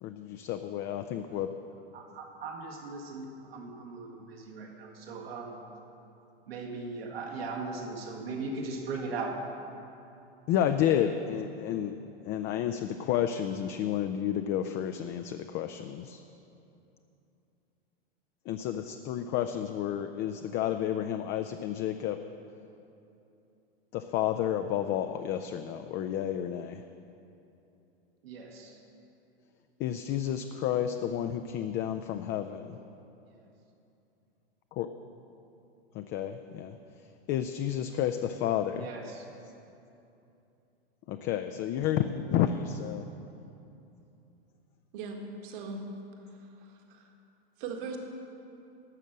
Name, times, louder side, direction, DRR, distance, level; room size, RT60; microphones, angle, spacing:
voice 1, 0.0-1.5 10.5-12.0 12.3-16.2 18.5-22.2 23.9-26.8 29.8-32.8 34.7-34.9 35.9-36.8 37.3-38.9 41.1-43.1, left 10 dB, 35° left, 7 dB, 0.5 m, -31 dB
voice 2, 1.9-5.6 6.5-9.4 28.2-28.8 38.7-39.2, right 3 dB, 75° right, 0 dB, 1.9 m, -38 dB
voice 3, 44.9-45.8 46.6-47.1 47.6-48.0, right 4 dB, 55° right, 2 dB, 1.8 m, -39 dB
12.5 x 6.4 x 7.5 m, 2.8 s
hypercardioid pair, 105°, 30 cm